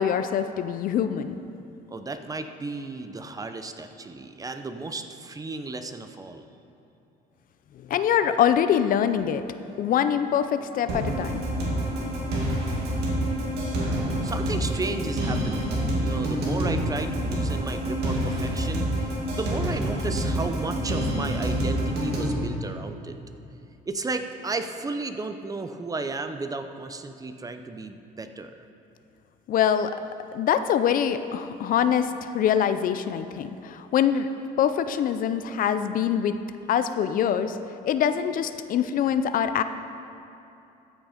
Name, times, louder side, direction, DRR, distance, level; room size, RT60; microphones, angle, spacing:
voice 1, 0.0-1.3 7.9-9.4 9.8-11.4 29.5-30.0 30.3-34.3 34.6-36.4 36.7-37.6 37.8-39.6, left 9 dB, 55° left, 11 dB, 0.5 m, -24 dB
voice 2, 1.9-6.5 14.2-23.2 23.9-28.6, right 3 dB, 20° right, 8 dB, 0.6 m, -34 dB
sound 1, 10.9-22.3, right 1 dB, 80° right, 2.3 m, -27 dB
14.0 x 6.2 x 5.0 m, 2.8 s
cardioid pair, 110°, 17 cm